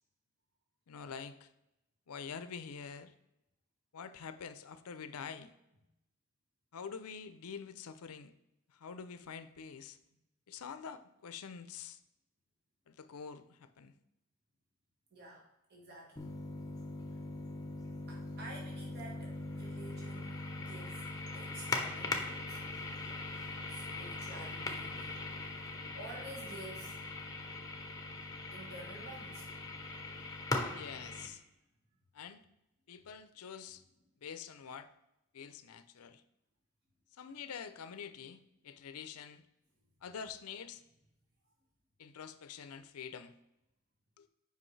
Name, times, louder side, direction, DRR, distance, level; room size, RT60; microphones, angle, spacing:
voice 1, 0.9-1.5 2.1-3.1 3.9-5.5 6.7-8.3 8.7-10.0 10.5-12.0 12.9-13.9 30.7-31.4 32.1-32.4 32.9-33.8 34.2-34.9 35.3-36.2 37.2-39.4 40.0-40.8 42.0-43.3 44.2-44.3, left 6 dB, 85° left, 12 dB, 0.5 m, -46 dB
voice 2, 15.1-16.3 18.1-22.6 23.3-25.2 25.9-27.0 28.5-29.5, right 2 dB, 45° right, -3 dB, 1.4 m, -51 dB
sound 1, 16.2-31.3, left 3 dB, 15° left, 0.7 m, -41 dB
7.6 x 5.3 x 3.2 m, 0.89 s
head